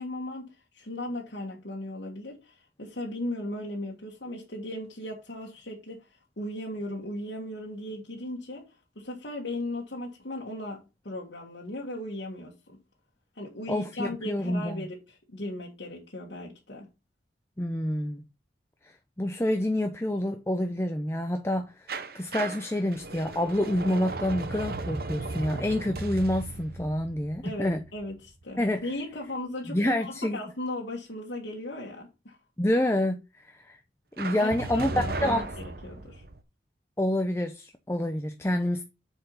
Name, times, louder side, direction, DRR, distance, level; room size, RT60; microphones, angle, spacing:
voice 1, 0.0-12.8 13.4-16.9 27.4-32.4 34.4-36.2, left 1 dB, 70° left, 1.7 m, -37 dB
voice 2, 13.7-14.9 17.6-18.2 18.8-27.8 28.6-28.9 29.7-30.5 32.6-33.8 34.2-34.9 35.2-35.5 37.0-38.8, left 1 dB, 15° left, 0.6 m, -28 dB
sound 1, 21.9-28.7 34.2-36.4, right 3 dB, 55° right, 0.9 m, -36 dB
8.0 x 4.6 x 5.4 m
head